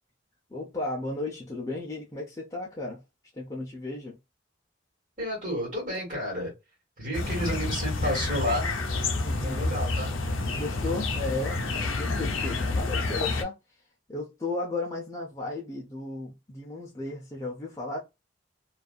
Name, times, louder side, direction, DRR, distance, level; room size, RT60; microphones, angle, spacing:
voice 1, 0.5-3.0 3.3-4.2 9.2-9.7 10.5-13.8 14.1-18.0, left 2 dB, 15° left, 0.5 m, -35 dB
voice 2, 5.2-6.5 7.0-8.7 9.4-10.1, equal, 35° right, 1.6 m, -31 dB
sound 1, 7.1-13.4, left 3 dB, 85° left, 0.6 m, -29 dB
2.6 x 2.4 x 2.2 m
head